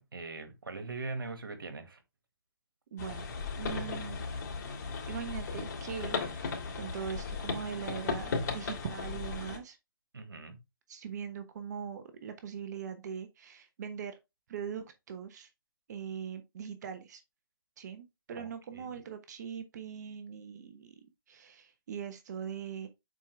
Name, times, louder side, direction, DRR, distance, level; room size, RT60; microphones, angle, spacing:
voice 1, 0.0-2.0 10.1-10.6 18.4-18.5 18.7-19.0, right 3 dB, 80° right, 2.0 m, -41 dB
voice 2, 2.9-3.3 3.6-4.2 4.9-9.8 10.9-14.2 14.5-15.5 15.9-17.2 17.8-20.9 21.3-22.9, right 7 dB, 50° right, 1.1 m, -41 dB
sound 1, 3.0-9.6, left 4 dB, 55° left, 3.0 m, -36 dB
7.5 x 4.9 x 3.3 m
hypercardioid pair, 135°, 12 cm